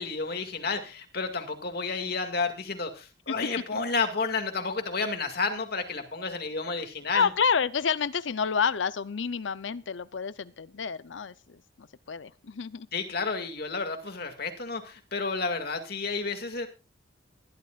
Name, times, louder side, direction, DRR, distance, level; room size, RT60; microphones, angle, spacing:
voice 1, 0.0-7.3 12.9-16.7, left 4 dB, 60° left, 5 dB, 2.2 m, -31 dB
voice 2, 7.1-12.9, left 6 dB, 80° left, 16 dB, 0.6 m, -29 dB
20.5 x 12.0 x 2.5 m, 0.29 s
head